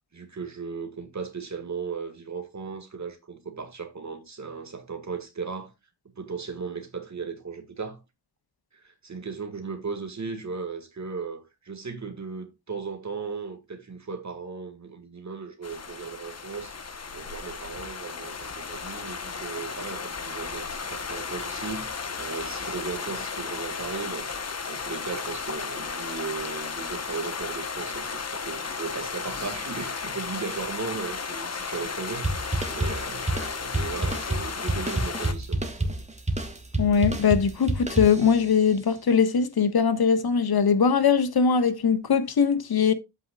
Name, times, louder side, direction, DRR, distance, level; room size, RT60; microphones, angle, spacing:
voice 1, 0.1-5.7 6.2-8.0 8.7-16.7 17.1-24.4 24.7-36.0, right 5 dB, 40° right, 1.9 m, -36 dB
sound 1, 15.6-35.3, left 5 dB, 35° left, 1.1 m, -34 dB
sound 2, 32.2-38.6, right 1 dB, 15° right, 1.8 m, -29 dB
voice 2, 36.8-42.9, left 6 dB, 60° left, 1.5 m, -21 dB
11.0 x 8.4 x 2.4 m
wide cardioid pair, 135°, 42 cm